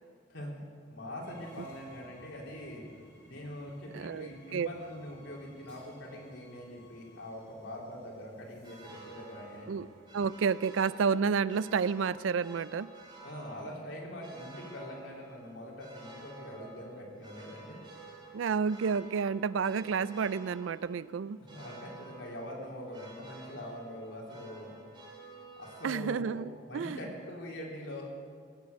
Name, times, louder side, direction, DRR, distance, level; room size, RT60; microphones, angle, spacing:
voice 1, 0.9-2.8 3.2-9.7 13.2-17.8 21.5-24.7 25.6-28.1, equal, 90° left, -3 dB, 3.5 m, -43 dB
Train, 1.2-10.4, left 2 dB, 70° left, 4.9 m, -59 dB
voice 2, 3.9-4.7 9.7-9.9 10.1-12.9 18.3-21.4 25.8-27.0, right 6 dB, 80° right, 18 dB, 0.4 m, -30 dB
sound 1, 8.6-26.1, right 3 dB, 25° right, 2.8 m, -52 dB
18.5 x 7.8 x 8.2 m, 2.1 s
head